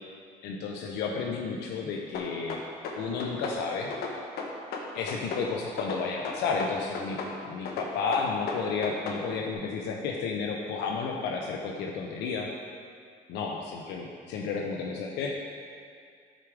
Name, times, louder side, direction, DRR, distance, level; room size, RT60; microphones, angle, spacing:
voice 1, 0.4-2.6 3.0-3.9 4.9-7.2 7.4-12.5 13.3-15.4, left 5 dB, 85° left, 1 dB, 0.8 m, -32 dB
sound 1, 2.1-3.6 3.9-5.5 5.8-7.4 7.7-9.2, left 4 dB, 70° left, 1.1 m, -35 dB
11.5 x 4.7 x 4.9 m, 2.2 s
cardioid pair, 110°, 17 cm